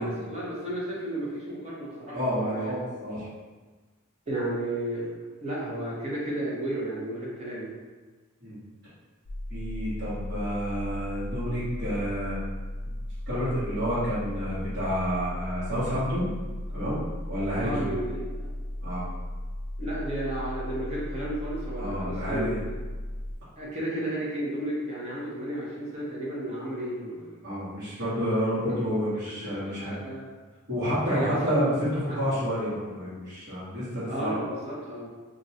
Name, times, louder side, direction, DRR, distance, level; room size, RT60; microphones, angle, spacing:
voice 1, 0.0-2.7 4.3-5.1 5.4-7.7 17.6-18.5 19.8-22.5 23.6-27.3 28.7-28.8 29.2-30.3 31.1-32.2 34.0-35.1, right 1 dB, 30° right, -7 dB, 0.9 m, -33 dB
voice 2, 2.1-3.2 8.4-8.6 9.5-12.4 13.3-16.3 16.7-17.9 18.8-19.1 21.8-22.6 27.4-30.0 30.7-34.4, equal, 50° right, -14 dB, 1.3 m, -29 dB
sound 1, 9.2-23.3, left 1 dB, 70° left, 0.4 m, -36 dB
2.6 x 2.3 x 4.1 m, 1.3 s
head